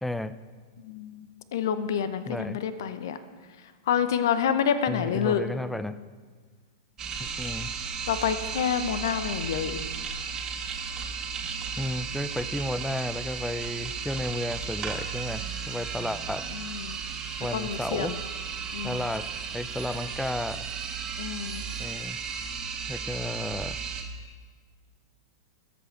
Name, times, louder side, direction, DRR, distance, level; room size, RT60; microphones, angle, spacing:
voice 1, 0.0-0.4 2.3-2.6 4.9-6.0 7.2-7.7 11.8-16.5 17.4-18.2 18.8-20.7 21.8-22.2 22.9-23.8, left 1 dB, 5° left, 14 dB, 0.5 m, -33 dB
voice 2, 0.8-3.2 3.9-5.5 8.1-9.8 16.5-17.0 17.5-18.2 18.7-19.1 21.2-21.6, left 8 dB, 60° left, 12 dB, 0.9 m, -28 dB
sound 1, 7.0-24.0, right 6 dB, 25° right, 1.7 m, -35 dB
20.5 x 8.2 x 4.6 m, 1.5 s
figure-of-eight pair, 100°, 2 cm